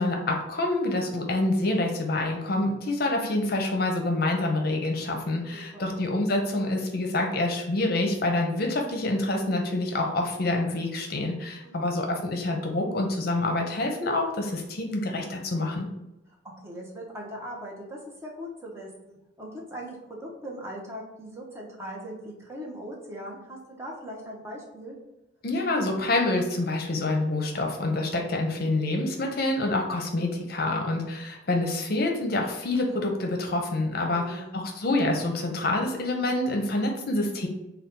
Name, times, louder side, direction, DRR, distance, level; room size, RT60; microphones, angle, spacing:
voice 1, 0.0-15.9 25.4-37.5, left 2 dB, 55° left, 2 dB, 0.6 m, -27 dB
voice 2, 5.5-6.0 11.6-11.9 16.6-25.0 34.1-34.5, equal, 15° right, -3 dB, 0.9 m, -40 dB
4.1 x 2.3 x 3.7 m, 0.92 s
head